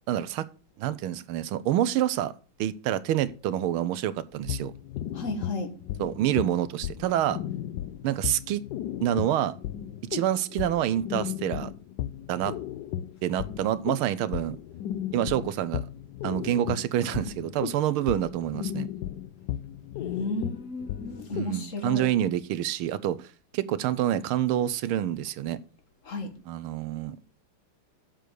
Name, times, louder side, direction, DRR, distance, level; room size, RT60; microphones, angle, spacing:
voice 1, 0.1-0.5 0.8-2.3 2.6-4.7 6.0-7.4 8.0-8.6 9.0-9.5 10.1-11.7 12.3-12.6 13.2-14.6 15.1-15.8 16.2-18.9 21.3-23.3 23.5-25.6 26.5-27.2, right 11 dB, 75° right, 1.5 m, -27 dB
sound 1, 4.4-21.5, left 11 dB, 75° left, 1.0 m, -35 dB
voice 2, 5.1-5.7 20.0-22.1 26.0-26.3, left 2 dB, 40° left, 1.4 m, -33 dB
7.7 x 6.4 x 6.7 m
omnidirectional pair, 2.4 m